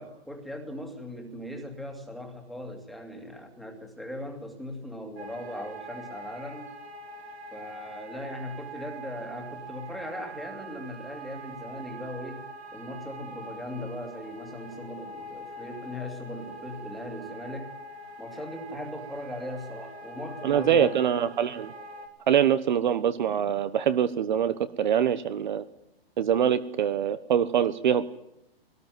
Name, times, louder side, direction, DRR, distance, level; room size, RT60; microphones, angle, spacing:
voice 1, 0.0-6.7 7.5-12.4 12.7-17.7 18.2-21.1, left 1 dB, ahead, 3 dB, 2.3 m, -39 dB
sound 1, 5.2-22.1, right 2 dB, 85° right, 4.7 m, -43 dB
voice 2, 20.4-21.7 22.3-25.6 26.2-28.0, right 9 dB, 50° right, 13 dB, 1.1 m, -24 dB
21.0 x 19.0 x 9.2 m, 0.84 s
hypercardioid pair, 175°, 31 cm